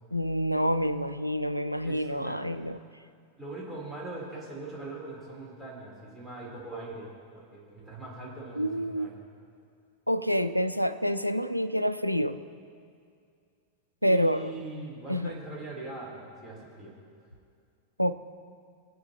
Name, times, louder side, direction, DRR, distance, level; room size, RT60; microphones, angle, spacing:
voice 1, 0.1-2.8 8.6-9.1 10.1-12.4 14.0-14.6 15.1-15.3 18.0-18.1, equal, 90° left, 12 dB, 0.4 m, -27 dB
voice 2, 1.8-2.5 3.4-7.1 7.3-9.2 14.0-16.9, right 2 dB, 5° left, -5 dB, 3.4 m, -41 dB
21.0 x 8.8 x 2.9 m, 2.3 s
figure-of-eight pair, 90°, 0 cm